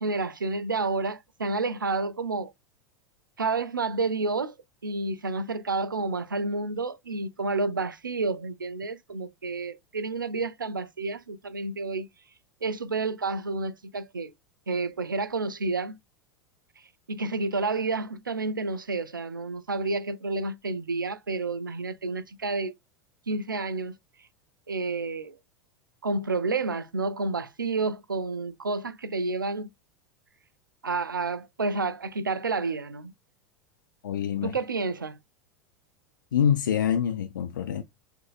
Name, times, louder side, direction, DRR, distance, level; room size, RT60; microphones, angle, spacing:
voice 1, 0.0-2.5 3.4-4.5 4.8-12.1 12.6-14.3 14.7-16.0 17.1-22.7 23.3-24.0 24.7-25.4 26.0-29.7 30.8-33.1 34.4-35.2, right 3 dB, 85° right, 0.4 m, -30 dB
voice 2, 34.0-34.5 36.3-37.8, left 8 dB, 75° left, 0.4 m, -25 dB
6.4 x 2.6 x 2.3 m
figure-of-eight pair, 85°, 11 cm